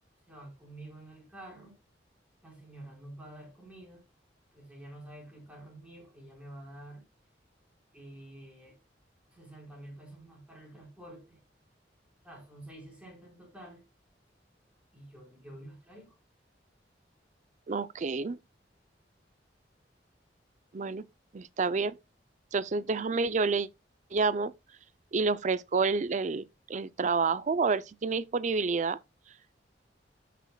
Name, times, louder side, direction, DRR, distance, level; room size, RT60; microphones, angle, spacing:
voice 1, 0.3-1.8 2.4-4.0 4.5-7.0 7.9-8.8 9.3-11.4 12.2-13.8 14.9-16.1, right 1 dB, 5° right, 4.4 m, -49 dB
voice 2, 17.7-18.4 20.7-21.1 21.3-22.0 22.5-23.7 24.1-24.5 25.1-29.0, right 4 dB, 45° right, 0.5 m, -29 dB
14.5 x 5.9 x 2.3 m
head